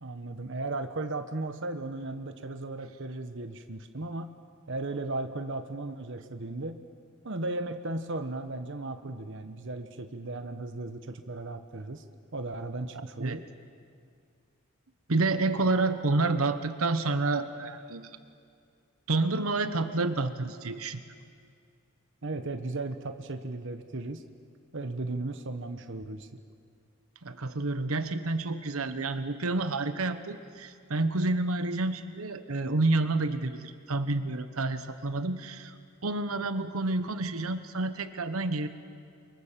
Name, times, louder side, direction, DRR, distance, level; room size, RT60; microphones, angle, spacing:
voice 1, 0.0-4.3 4.7-6.8 7.2-12.0 12.3-13.5 22.2-24.2 24.7-26.3, right 2 dB, 60° right, 8 dB, 1.2 m, -36 dB
voice 2, 12.9-13.4 15.1-18.1 19.1-21.0 27.2-35.7 36.0-38.7, right 2 dB, 90° right, 10 dB, 1.2 m, -29 dB
29.0 x 24.0 x 7.5 m, 2.3 s
head